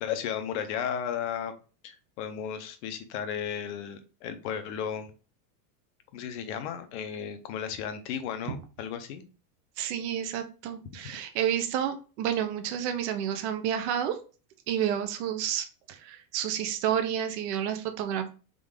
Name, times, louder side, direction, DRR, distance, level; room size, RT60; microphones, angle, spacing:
voice 1, 0.0-1.5 1.8-5.1 6.1-9.2, left 8 dB, 45° left, 8 dB, 0.8 m, -34 dB
voice 2, 9.8-14.2 14.7-18.3, right 9 dB, 45° right, 7 dB, 0.7 m, -30 dB
3.8 x 3.8 x 3.6 m, 0.35 s
supercardioid pair, 175°, 49 cm